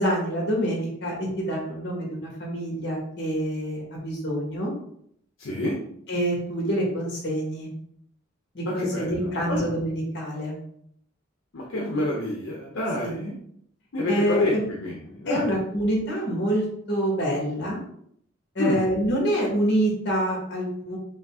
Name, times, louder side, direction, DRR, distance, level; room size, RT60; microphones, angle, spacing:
voice 1, 0.0-4.7 6.1-7.7 8.5-10.5 13.0-13.1 14.1-14.6 15.2-17.8 18.5-21.0, equal, 55° left, -2 dB, 1.7 m, -26 dB
voice 2, 5.4-5.8 8.8-9.7 11.5-13.3 13.9-14.6 14.8-15.5 18.6-18.8, left 1 dB, 75° left, -2 dB, 0.7 m, -28 dB
5.3 x 2.4 x 3.6 m, 0.69 s
head